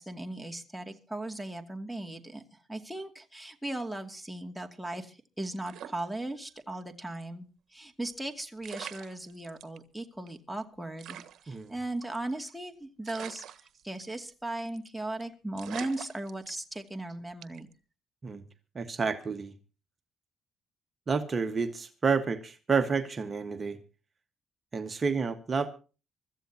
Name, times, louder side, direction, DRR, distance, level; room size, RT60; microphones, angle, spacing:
voice 1, 0.0-2.4 2.7-7.4 7.7-13.4 13.8-17.7, right 2 dB, 5° right, 2.5 m, -37 dB
sound 1, 5.6-6.8 7.1-7.2 8.3-8.4 8.6-9.8 10.3-10.4 10.5-10.6 11.0-12.5 13.0-14.3 14.6-14.9 15.2-15.3 15.6-16.9 17.4-17.7, right 10 dB, 70° right, 1.3 m, -45 dB
voice 2, 18.7-19.5 21.1-23.8 24.7-25.7, right 5 dB, 35° right, 1.5 m, -29 dB
24.5 x 14.5 x 2.9 m
cardioid pair, 90°, 0 cm